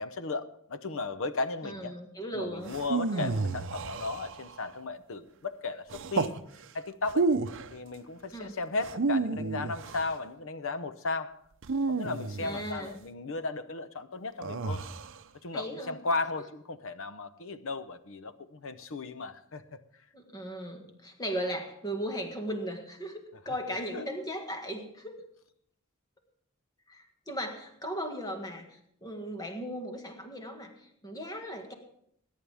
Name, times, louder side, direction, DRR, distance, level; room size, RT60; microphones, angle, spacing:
voice 1, 0.0-1.9 2.3-6.3 6.7-7.3 7.7-11.4 11.9-14.8 15.4-19.8 23.9-24.1, left 3 dB, 65° left, 0.8 m, -35 dB
voice 2, 1.6-2.7 3.1-3.3 8.3-8.5 12.4-12.9 15.5-16.0 20.1-25.1 26.9-31.7, equal, 20° left, 1.7 m, -37 dB
sound 1, 2.7-4.7 5.9-6.4 7.0-7.7 8.8-10.1 11.6-12.8 14.4-15.2, right 3 dB, 60° right, 0.7 m, -31 dB
21.5 x 10.5 x 3.5 m
head